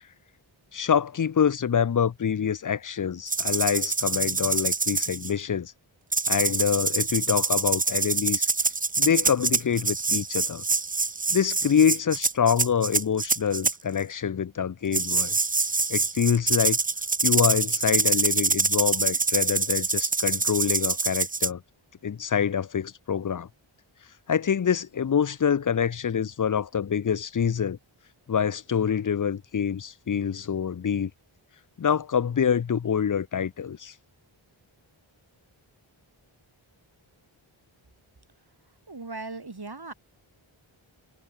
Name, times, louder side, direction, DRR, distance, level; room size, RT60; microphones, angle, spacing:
voice 1, 0.7-5.7 6.3-8.5 9.0-10.6 11.3-15.4 15.9-16.8 17.2-21.6 22.0-23.5 24.3-27.8 28.3-31.1 31.8-33.9, left 7 dB, 40° left, 0.5 m, -26 dB
sound 1, 3.3-5.3 6.1-13.7 14.9-21.5, right 4 dB, 20° right, 0.4 m, -25 dB
voice 2, 38.9-39.9, right 3 dB, 50° right, 3.5 m, -38 dB
wide cardioid pair, 50°, 49 cm